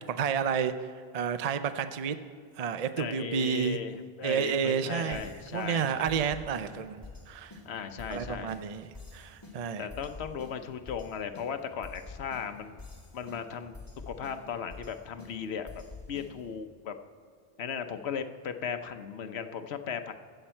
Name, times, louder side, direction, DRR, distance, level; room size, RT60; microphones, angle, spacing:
voice 1, 0.1-0.9 1.1-2.2 2.6-3.8 4.2-7.6 8.1-9.9, right 7 dB, 45° right, 10 dB, 0.6 m, -31 dB
voice 2, 3.0-6.2 7.6-8.6 9.8-12.8 13.1-13.8 14.1-15.7 16.1-16.9 17.6-20.1, left 7 dB, 90° left, 8 dB, 1.1 m, -37 dB
sound 1, 5.1-16.6, left 3 dB, 20° left, 2.2 m, -48 dB
23.0 x 7.9 x 4.4 m, 2.1 s
omnidirectional pair, 1.1 m